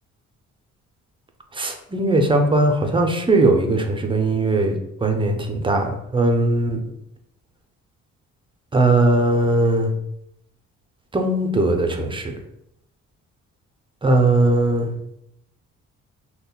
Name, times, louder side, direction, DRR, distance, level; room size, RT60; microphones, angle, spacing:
voice 1, 1.6-5.4 5.6-5.8 6.1-6.8 8.7-9.9 11.1-12.3 14.0-14.9, right 2 dB, 15° right, 3 dB, 0.5 m, -19 dB
5.3 x 2.2 x 2.3 m, 0.78 s
cardioid pair, 90°, 30 cm